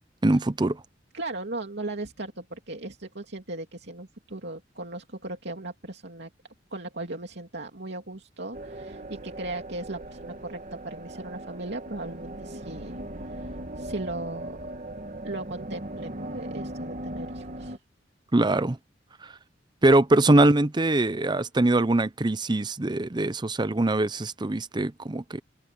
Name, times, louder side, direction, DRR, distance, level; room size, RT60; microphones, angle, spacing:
voice 1, 0.2-0.8 18.3-18.8 19.2-19.3 19.8-25.4, right 2 dB, 25° right, 0.6 m, -22 dB
voice 2, 1.1-6.3 6.7-13.0 13.3-13.5 13.8-14.7 15.2-17.8, right 2 dB, 65° right, 2.9 m, -37 dB
sound 1, 8.5-17.8, right 1 dB, 45° right, 1.8 m, -38 dB
open air
head